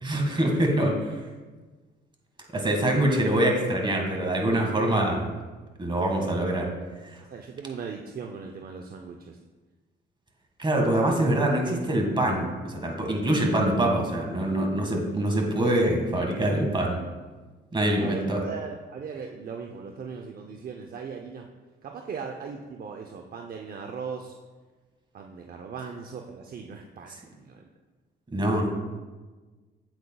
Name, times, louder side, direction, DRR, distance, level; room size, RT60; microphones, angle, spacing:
voice 1, 0.0-1.2 2.5-5.3 5.8-6.7 7.0-7.2 10.6-17.0 17.7-18.4 28.3-28.7, right 1 dB, 25° right, 1 dB, 1.8 m, -24 dB
voice 2, 7.3-9.4 18.0-21.5 21.8-24.3 25.1-27.7, right 6 dB, 50° right, 3 dB, 0.6 m, -38 dB
8.6 x 8.1 x 2.3 m, 1.3 s
cardioid pair, 90°, 20 cm